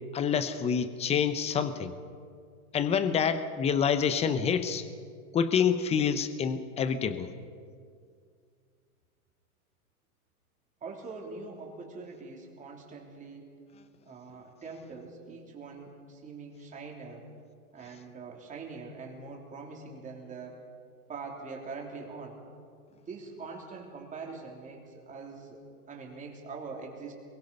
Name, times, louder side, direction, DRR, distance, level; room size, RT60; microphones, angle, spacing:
voice 1, 0.1-1.9 2.7-4.9 5.3-7.3, left 7 dB, 15° left, 12 dB, 0.8 m, -27 dB
voice 2, 10.8-13.5 14.0-17.3 17.7-20.6 21.1-22.4 22.9-25.6 25.9-27.1, right 4 dB, 15° right, 0 dB, 3.3 m, -43 dB
23.0 x 22.5 x 5.4 m, 2.2 s
hypercardioid pair, 140°, 45 cm